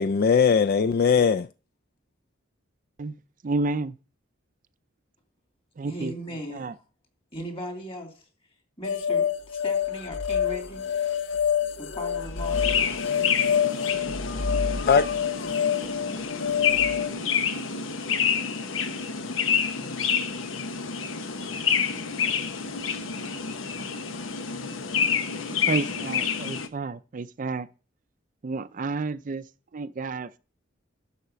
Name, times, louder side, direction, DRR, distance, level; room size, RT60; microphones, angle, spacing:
voice 1, 0.0-1.5 14.3-15.5, left 6 dB, 50° left, 0.4 m, -22 dB
voice 2, 3.0-4.0 5.8-6.8 25.7-27.7 28.4-30.4, right 3 dB, 40° right, 0.4 m, -31 dB
voice 3, 5.8-6.7 7.3-8.3 8.8-11.3 11.6-12.8 25.3-25.9, equal, 30° left, 2.6 m, -39 dB
sound 1, 8.8-17.1, left 7 dB, 65° left, 0.7 m, -27 dB
sound 2, 12.4-26.7, left 6 dB, 90° left, 1.0 m, -28 dB
11.5 x 4.2 x 6.7 m
head